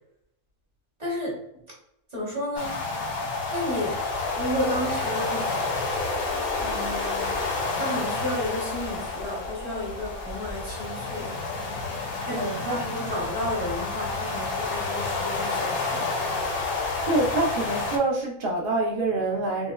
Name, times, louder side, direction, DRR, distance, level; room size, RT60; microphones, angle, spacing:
voice 1, 1.0-1.4 2.1-2.8 3.5-4.0 4.3-5.5 6.6-11.3 12.2-16.1, left 1 dB, 35° right, -4 dB, 1.0 m, -32 dB
sound 1, 2.6-18.0, left 3 dB, 55° left, 0.7 m, -29 dB
voice 2, 12.3-12.8 17.0-19.7, right 2 dB, 60° right, -1 dB, 0.6 m, -26 dB
3.5 x 2.1 x 2.2 m, 0.77 s
omnidirectional pair, 1.4 m